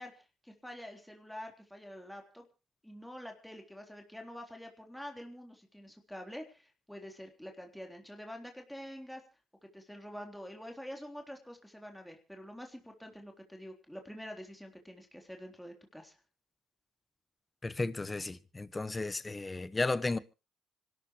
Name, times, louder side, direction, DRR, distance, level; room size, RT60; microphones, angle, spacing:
voice 1, 0.0-2.5 2.8-9.2 9.7-16.1, equal, ahead, 3.6 m, -47 dB
voice 2, 17.6-20.2, left 3 dB, 20° left, 1.2 m, -34 dB
26.0 x 12.5 x 3.1 m
supercardioid pair, 75°, 0 cm